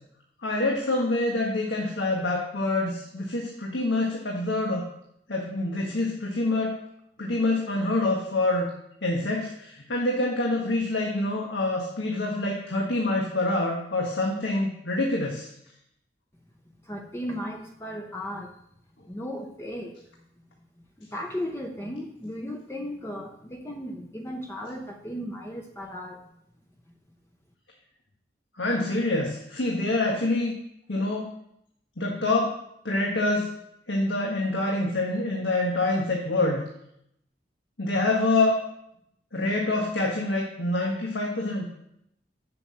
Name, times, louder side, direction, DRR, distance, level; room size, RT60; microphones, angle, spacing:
voice 1, 0.4-4.8 5.3-6.8 7.2-8.7 9.0-15.5 28.6-30.5 30.9-31.3 32.0-32.6 32.8-33.6 33.9-36.6 37.8-38.6 39.3-41.7, left 2 dB, 85° left, -1 dB, 1.6 m, -26 dB
voice 2, 16.8-18.5 19.1-20.0 21.0-26.3, equal, 15° left, 2 dB, 0.7 m, -36 dB
7.6 x 6.2 x 7.6 m, 0.75 s
head